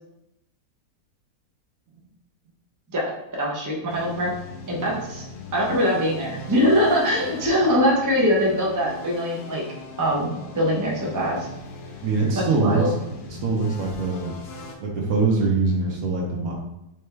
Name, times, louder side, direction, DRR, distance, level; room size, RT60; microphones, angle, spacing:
voice 1, 3.4-4.3 4.7-5.2 5.5-9.6 10.0-10.3 10.5-11.5 12.4-12.9, equal, 20° right, -3 dB, 0.5 m, -22 dB
sound 1, 3.9-14.8, left 3 dB, 75° left, 1.2 m, -39 dB
voice 2, 12.0-13.0 13.3-14.4 14.8-16.5, right 3 dB, 65° right, -1 dB, 1.3 m, -23 dB
4.2 x 3.4 x 3.3 m, 0.86 s
omnidirectional pair, 1.7 m